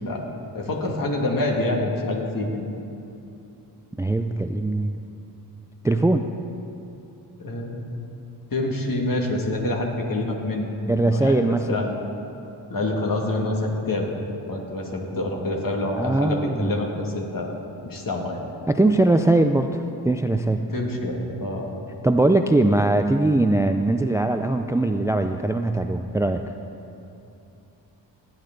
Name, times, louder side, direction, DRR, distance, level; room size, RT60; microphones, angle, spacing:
voice 1, 0.5-2.6 7.4-8.0 8.5-12.0 12.7-14.1 14.5-17.5 17.8-18.4 20.7-21.7, left 2 dB, 50° left, -1 dB, 2.2 m, -27 dB
voice 2, 4.0-5.0 5.8-6.3 10.9-11.8 16.0-16.8 18.7-19.8 20.0-20.6 22.0-26.4, right 2 dB, 10° right, 7 dB, 0.4 m, -21 dB
18.0 x 8.9 x 3.9 m, 2.8 s
cardioid pair, 55°, 42 cm